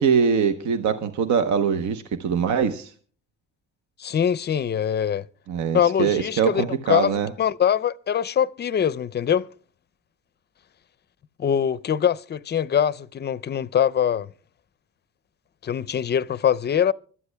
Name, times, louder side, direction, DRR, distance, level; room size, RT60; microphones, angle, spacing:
voice 1, 0.0-2.9 5.5-7.3, right 6 dB, 70° right, 0.9 m, -23 dB
voice 2, 4.0-5.2 5.7-9.5 11.4-14.3 15.6-16.9, left 8 dB, 35° left, 0.5 m, -23 dB
25.5 x 12.5 x 2.2 m
cardioid pair, 90°, 30 cm